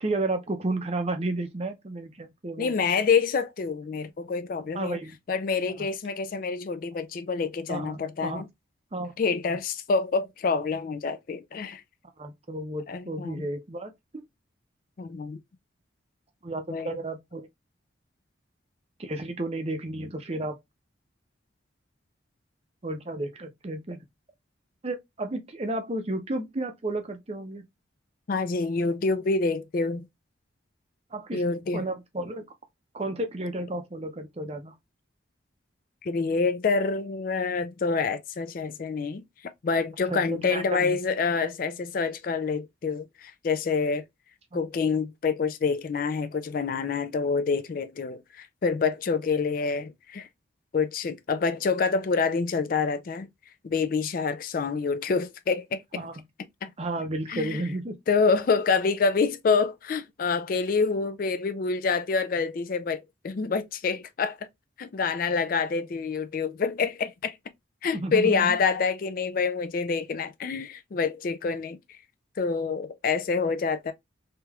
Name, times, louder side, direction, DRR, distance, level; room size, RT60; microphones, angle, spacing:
voice 1, 0.0-2.8 4.7-5.2 5.8-5.9 7.7-8.4 8.9-9.1 12.2-13.9 16.4-17.5 19.0-20.6 22.8-24.0 24.8-27.7 31.1-31.4 31.7-32.4 32.9-34.7 40.1-41.0 55.9-56.1 56.8-58.0 67.9-68.6, right 2 dB, 30° right, 0.6 m, -32 dB
voice 2, 2.6-5.0 5.3-8.5 9.2-11.8 12.9-13.5 15.0-15.4 16.7-17.0 28.3-30.1 31.3-31.9 36.0-39.2 39.6-44.0 44.5-50.3 50.7-53.3 53.6-55.8 56.6-56.7 57.3-57.6 58.1-64.4 64.8-67.4 67.8-71.8 72.4-73.9, left 4 dB, 45° left, 0.3 m, -27 dB
3.3 x 2.8 x 2.3 m
head